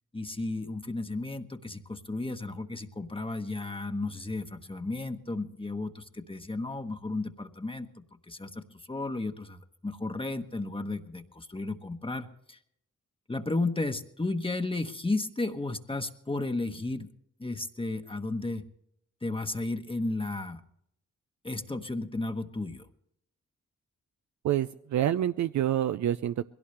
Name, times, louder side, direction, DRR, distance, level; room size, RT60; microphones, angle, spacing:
voice 1, 0.1-7.9 8.3-12.6 13.3-17.1 17.4-18.6 19.2-20.6 21.4-22.9, left 2 dB, 15° left, 7 dB, 1.1 m, -33 dB
voice 2, 24.4-26.5, right 11 dB, 70° right, 11 dB, 0.5 m, -27 dB
21.5 x 17.0 x 3.3 m, 0.73 s
cardioid pair, 65°, 30 cm